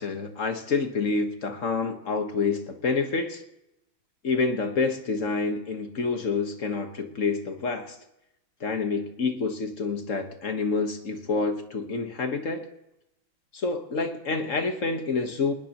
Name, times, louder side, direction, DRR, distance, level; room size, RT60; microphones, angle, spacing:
voice 1, 0.0-3.4 4.2-7.9 8.6-12.7 13.5-15.5, left 4 dB, 40° left, 6 dB, 1.5 m, -28 dB
21.0 x 20.0 x 3.0 m, 0.86 s
omnidirectional pair, 2.4 m